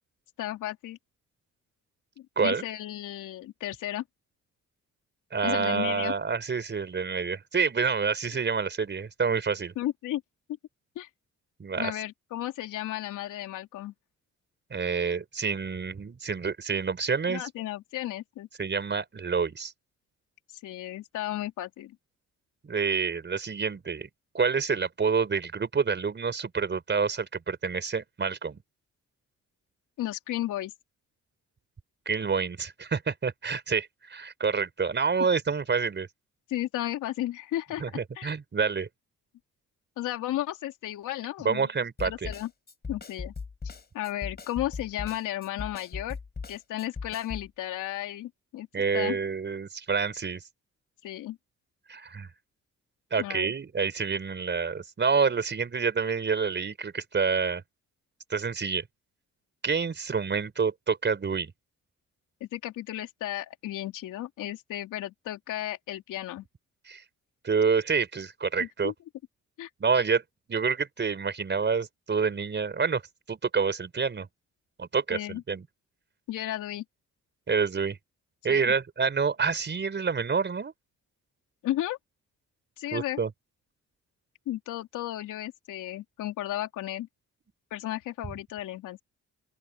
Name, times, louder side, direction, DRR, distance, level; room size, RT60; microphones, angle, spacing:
voice 1, 0.4-1.0 2.2-4.0 5.4-6.1 9.8-10.2 11.0-11.1 11.8-13.9 17.3-18.5 20.5-22.0 30.0-30.7 36.5-37.8 38.2-38.3 40.0-41.7 42.0-42.5 42.9-43.3 43.9-46.2 46.5-48.7 48.9-49.2 51.0-51.4 53.2-53.5 62.4-66.5 68.6-68.9 69.6-69.7 75.1-75.4 76.3-76.8 78.5-78.7 81.6-82.0 82.8-83.2 84.5-87.1 87.7-89.0, left 14 dB, 85° left, 3.6 m, -34 dB
voice 2, 5.3-9.7 11.6-11.9 14.7-17.4 18.6-19.7 22.6-24.1 24.3-28.6 32.0-36.1 37.8-38.9 41.4-42.3 48.7-50.4 51.9-52.3 53.1-57.6 58.3-58.8 59.6-61.5 66.9-67.0 67.4-68.9 69.8-70.2 70.5-73.0 73.3-74.3 74.8-75.6 77.5-78.0 78.4-80.7 82.9-83.3, right 5 dB, 35° right, 5.1 m, -28 dB
Snare drum, 42.0-47.5, left 5 dB, 35° left, 4.5 m, -38 dB
open air
cardioid pair, 90°, 30 cm